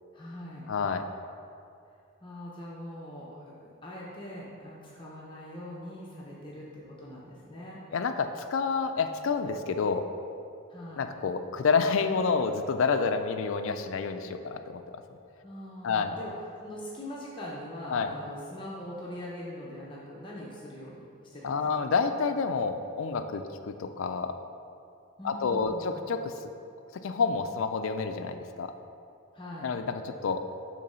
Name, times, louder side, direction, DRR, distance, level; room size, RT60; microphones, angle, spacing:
voice 1, 0.1-0.7 2.2-7.8 10.7-11.1 15.4-16.3 16.6-21.7 25.2-26.0 29.3-29.7, left 1 dB, 25° left, -5 dB, 0.7 m, -42 dB
voice 2, 0.7-1.0 7.9-10.0 11.0-15.0 15.8-16.2 17.9-18.1 21.4-24.4 25.2-26.3 26.9-28.7 29.6-30.4, left 5 dB, 65° left, 8 dB, 0.4 m, -29 dB
6.6 x 3.2 x 5.5 m, 2.5 s
head